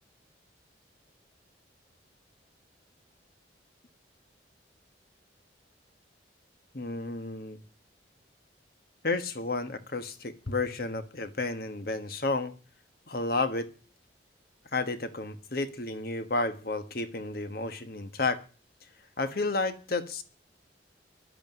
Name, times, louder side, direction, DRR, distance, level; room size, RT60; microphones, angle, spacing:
voice 1, 6.7-7.6 9.0-12.5 13.1-13.7 14.7-18.4 19.2-20.2, left 3 dB, 55° left, 1.2 m, -31 dB
11.0 x 8.3 x 9.4 m
head